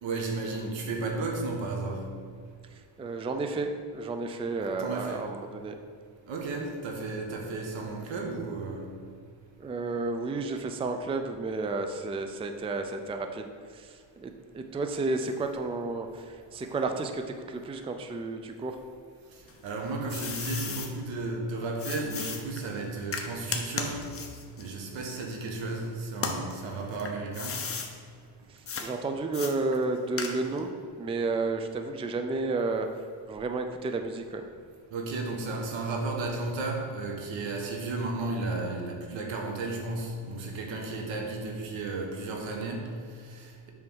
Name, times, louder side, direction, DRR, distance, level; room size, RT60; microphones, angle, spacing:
voice 1, 0.0-2.2 4.6-5.3 6.3-8.9 19.3-24.1 24.6-27.7 34.9-43.7, right 3 dB, 85° right, 1.4 m, -34 dB
voice 2, 2.7-5.8 9.6-18.8 28.5-30.7 31.0-32.9 33.3-34.4, right 3 dB, 15° right, 0.4 m, -32 dB
sound 1, 19.5-20.9 21.8-25.7 26.1-27.9 28.7-28.9 29.3-30.7, left 5 dB, 30° left, 0.8 m, -36 dB
7.6 x 3.5 x 6.2 m
cardioid pair, 130°, 45 cm